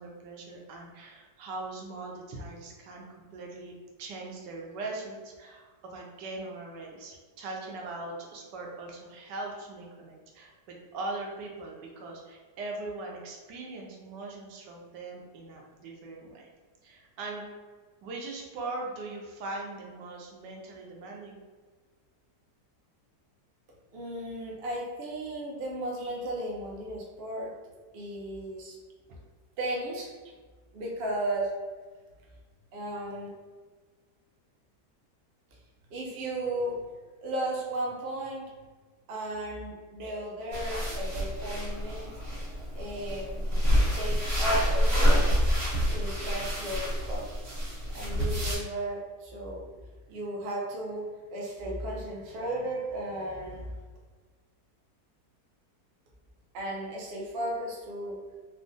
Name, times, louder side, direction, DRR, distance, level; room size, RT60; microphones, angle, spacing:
voice 1, 0.0-3.1 3.3-3.7 4.0-16.5 16.8-17.5 18.0-21.4, right 2 dB, 85° right, 0 dB, 1.2 m, -40 dB
voice 2, 23.9-27.5 27.9-28.8 29.6-30.1 30.7-31.5 32.7-33.3 35.9-36.8 37.2-38.5 39.1-42.1 42.7-43.5 43.9-45.3 45.9-47.2 47.9-49.7 50.1-53.7 56.5-58.2, right 1 dB, 65° right, -2 dB, 0.6 m, -35 dB
sound 1, 40.5-48.5, equal, 40° right, 1.2 m, -27 dB
3.5 x 2.1 x 2.5 m, 1.4 s
omnidirectional pair, 1.8 m